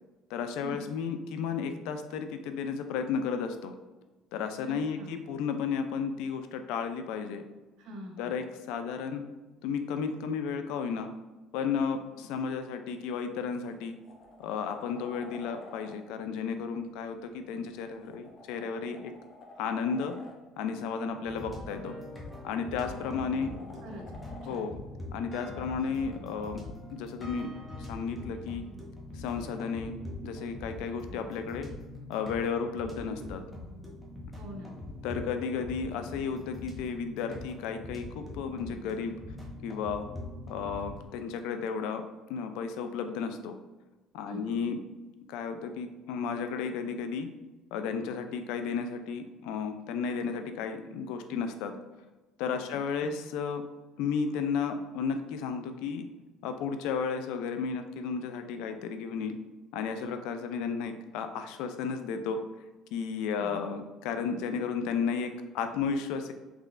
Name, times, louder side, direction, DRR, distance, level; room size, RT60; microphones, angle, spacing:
voice 1, 0.3-3.7 4.3-7.4 8.2-9.2 9.6-11.1 11.5-14.0 14.4-19.1 19.6-20.2 20.6-22.0 22.4-23.5 24.5-24.8 25.1-26.6 26.9-27.5 27.8-28.6 29.1-29.9 30.2-31.7 32.1-33.4 35.0-39.1 39.6-40.1 40.5-42.0 42.3-43.6 44.1-44.8 45.3-47.3 47.7-51.7 52.4-53.6 54.0-56.1 56.4-59.4 59.7-62.4 62.9-66.3, left 6 dB, 80° left, 7 dB, 0.3 m, -33 dB
voice 2, 4.6-5.2 7.8-8.4 23.3-24.7 34.3-34.8 44.2-44.6 52.7-53.2 63.3-63.6, right 1 dB, 75° right, 1 dB, 0.7 m, -45 dB
sound 1, 13.7-16.0 17.6-20.4 21.9-24.7 27.0-27.1, left 2 dB, 40° left, 0.6 m, -51 dB
sound 2, 21.2-41.1, left 2 dB, 10° left, 0.8 m, -43 dB
3.6 x 3.1 x 2.4 m, 1.2 s
cardioid pair, 105°, 0 cm